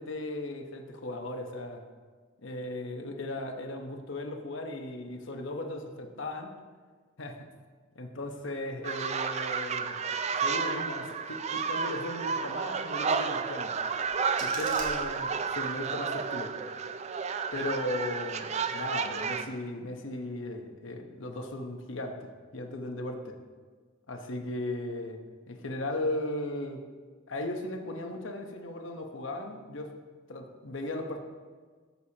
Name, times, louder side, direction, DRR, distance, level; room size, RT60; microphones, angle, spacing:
voice 1, 0.0-1.8 2.4-6.6 7.2-7.5 7.9-10.0 10.4-13.7 14.4-15.3 15.6-16.5 17.5-23.4 24.1-25.2 25.5-26.8 27.3-29.9 30.3-31.2, left 1 dB, 70° left, 4 dB, 1.0 m, -37 dB
sound 1, 8.8-19.5, right 5 dB, 35° right, 0.4 m, -31 dB
sound 2, 13.8-15.8, right 3 dB, 75° right, 1.9 m, -44 dB
14.0 x 6.9 x 2.9 m, 1.5 s
head